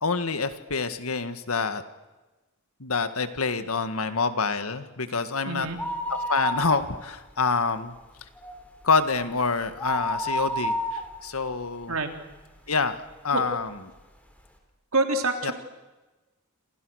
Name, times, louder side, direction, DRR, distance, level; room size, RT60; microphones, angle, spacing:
voice 1, 0.0-1.8 2.8-5.7 6.1-7.9 8.8-11.9 12.7-13.0 13.2-13.7 15.4-15.5, left 4 dB, 80° left, 10 dB, 1.9 m, -27 dB
voice 2, 5.5-5.8 11.9-12.1 13.3-13.4 14.9-15.5, right 3 dB, 70° right, 5 dB, 3.6 m, -26 dB
sound 1, 5.6-7.3 7.6-7.7 8.2-12.6 13.1-13.2 14.0-14.1 14.3-14.4, equal, 5° left, 4.0 m, -31 dB
28.0 x 27.5 x 6.5 m, 1.2 s
head